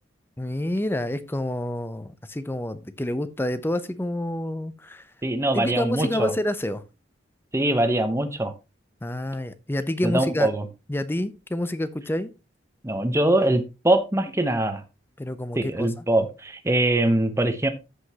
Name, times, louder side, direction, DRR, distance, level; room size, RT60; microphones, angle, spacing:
voice 1, 0.4-5.0 5.5-6.8 9.0-10.5 10.9-12.3 15.2-16.0, left 1 dB, 10° left, 0.6 m, -28 dB
voice 2, 5.2-6.3 7.5-8.5 10.0-10.7 12.8-14.8 15.5-17.7, right 1 dB, 15° right, 0.9 m, -23 dB
14.0 x 5.2 x 2.9 m
head